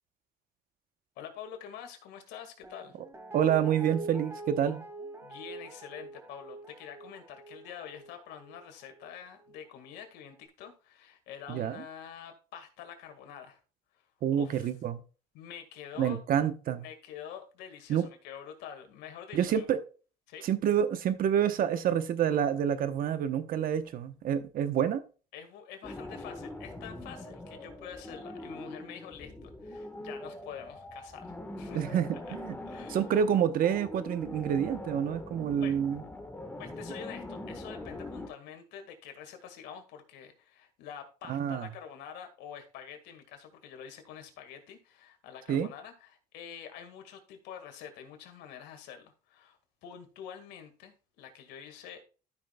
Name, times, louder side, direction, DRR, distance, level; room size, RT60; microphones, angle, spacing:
voice 1, 1.2-3.0 5.2-13.6 13.9-14.0 14.3-14.7 15.3-16.2 16.8-19.7 20.3-20.5 25.3-32.0 32.3-32.4 32.7-33.0 35.6-35.7 36.6-52.0, left 8 dB, 90° left, 1.9 m, -46 dB
Guitar, 2.6-9.7 10.0-10.1, right 2 dB, 15° right, 2.3 m, -45 dB
voice 2, 3.3-4.8 11.5-11.8 14.2-15.0 16.0-16.8 17.9-18.1 19.3-19.8 20.4-25.0 31.7-32.6 32.9-36.0 41.3-41.7 45.5-45.7, right 9 dB, 60° right, 1.0 m, -28 dB
sound 1, 25.8-38.3, left 1 dB, 10° left, 1.4 m, -43 dB
13.0 x 6.1 x 2.3 m
cardioid pair, 110°, 17 cm